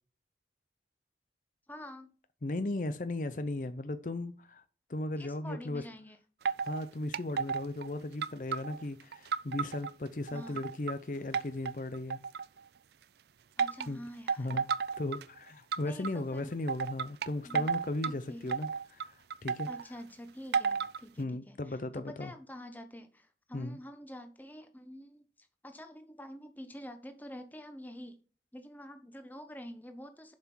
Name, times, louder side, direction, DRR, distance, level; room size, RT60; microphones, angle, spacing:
voice 1, 1.7-2.1 5.2-6.2 10.3-10.6 13.6-14.6 15.8-16.5 17.4-17.7 18.1-18.5 19.7-28.2 28.5-30.3, equal, 10° left, 1.0 m, -47 dB
voice 2, 2.4-4.6 4.9-5.8 6.6-12.2 13.9-14.0 14.4-14.6 15.0-19.7 21.2-22.3 23.5-23.8, left 2 dB, 45° left, 0.6 m, -36 dB
sound 1, 6.5-6.9 7.1-7.9 8.2-9.9 10.3-10.9 11.3-12.6 13.6-13.9 14.3-15.2 15.7-16.1 16.7-18.1 18.5-19.8 20.5-21.0, right 6 dB, 70° right, 0.4 m, -33 dB
7.4 x 5.8 x 4.5 m
head